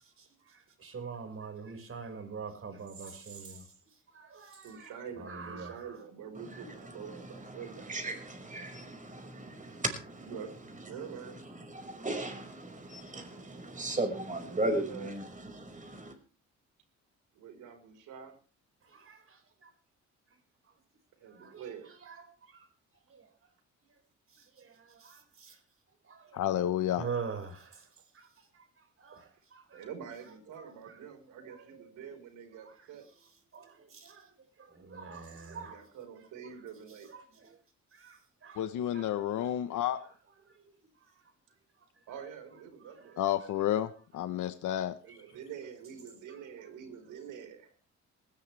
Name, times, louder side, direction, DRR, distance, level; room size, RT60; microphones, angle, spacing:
voice 1, 0.5-3.7 4.1-4.9 5.2-5.8 18.9-19.4 21.4-21.6 22.0-22.2 22.5-22.7 23.1-23.3 24.6-25.6 26.1-26.4 27.0-27.9 28.1-28.3 29.0-29.8 30.8-30.9 31.4-31.6 33.5-34.3 34.6-35.8 37.1-37.5 37.9-38.6 38.9-39.1, right 5 dB, 45° right, 5.6 m, -44 dB
voice 2, 4.6-8.2 10.2-10.5 10.9-11.4 14.5-15.1 17.3-18.4 21.2-21.9 29.7-33.0 35.5-37.1 42.1-43.2 45.0-47.7, right 7 dB, 85° right, 4.9 m, -46 dB
voice 3, 6.3-16.1, right 2 dB, 25° right, 5.8 m, -37 dB
voice 4, 26.3-27.0 38.6-40.0 43.2-44.9, left 11 dB, 80° left, 1.2 m, -30 dB
19.5 x 17.0 x 3.5 m
cardioid pair, 90°, 30 cm